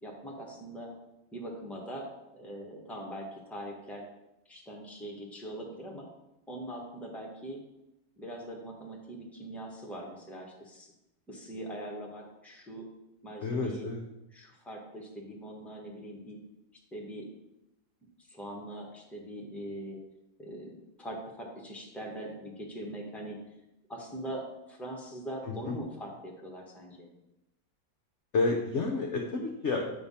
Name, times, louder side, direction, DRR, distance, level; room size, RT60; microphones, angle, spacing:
voice 1, 0.0-0.9 1.3-4.0 4.5-6.1 6.5-7.6 8.2-10.9 11.3-12.9 13.2-13.9 14.3-16.4 16.9-17.3 18.3-20.0 20.4-23.4 23.9-27.1, right 1 dB, ahead, -2 dB, 1.2 m, -42 dB
voice 2, 13.4-14.0 28.3-29.9, left 3 dB, 55° left, 1 dB, 0.8 m, -29 dB
7.8 x 3.5 x 5.5 m, 0.90 s
omnidirectional pair, 1.8 m